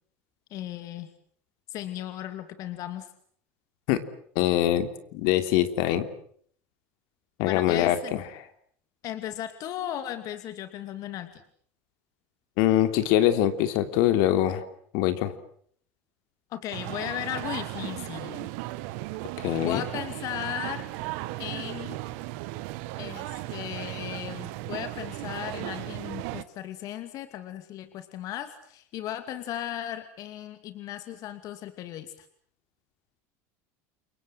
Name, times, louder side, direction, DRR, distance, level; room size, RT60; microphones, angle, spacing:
voice 1, 0.5-1.1 1.7-3.1 7.4-8.2 9.0-11.4 16.5-18.5 19.6-20.8 21.4-22.0 23.0-32.3, left 12 dB, 55° left, 9 dB, 2.5 m, -36 dB
voice 2, 4.3-6.0 7.4-8.2 12.6-14.6 14.9-15.3 19.4-19.8, left 12 dB, 70° left, 9 dB, 3.1 m, -23 dB
sound 1, 16.7-26.4, right 18 dB, 75° right, 1.5 m, -36 dB
29.0 x 23.0 x 7.7 m, 0.62 s
supercardioid pair, 110°, 7 cm